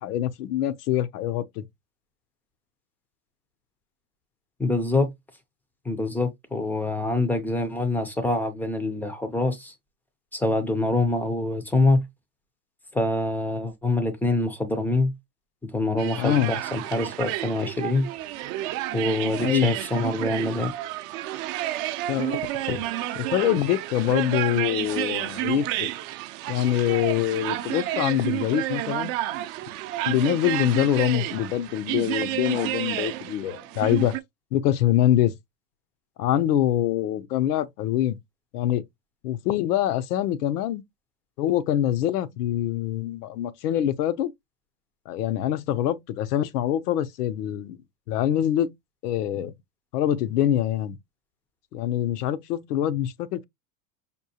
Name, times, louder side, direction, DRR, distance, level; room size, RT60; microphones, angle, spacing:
voice 1, 0.0-1.7 16.2-16.6 19.4-19.7 22.1-22.4 22.7-22.8 23.1-25.9 26.5-29.2 30.1-34.2 34.5-35.4 36.2-38.2 38.5-38.8 39.2-40.8 41.4-44.3 45.1-47.8 48.1-48.7 49.0-49.5 49.9-51.0 51.7-53.4, left 11 dB, 90° left, 0.6 m, -24 dB
voice 2, 4.6-5.1 5.9-9.7 10.3-12.1 12.9-15.1 15.6-18.1 18.9-20.7, left 2 dB, 5° left, 0.3 m, -25 dB
sound 1, 16.0-34.2, right 15 dB, 55° right, 0.5 m, -30 dB
5.2 x 2.2 x 2.7 m
supercardioid pair, 120°, 45 cm